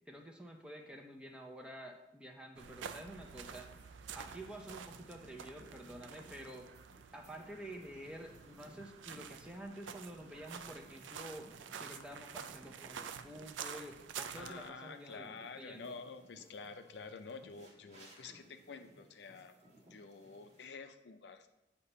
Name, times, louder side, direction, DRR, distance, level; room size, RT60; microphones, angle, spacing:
voice 1, 0.1-3.7 4.1-6.7 7.1-16.0, right 1 dB, 5° right, 1 dB, 0.6 m, -49 dB
sound 1, 2.6-14.7, right 7 dB, 90° right, 0.4 m, -49 dB
sound 2, 3.2-20.7, right 1 dB, 40° right, 1.4 m, -62 dB
voice 2, 14.4-19.5 19.9-21.5, left 4 dB, 70° left, 7 dB, 0.5 m, -49 dB
8.2 x 2.9 x 5.4 m, 0.92 s
head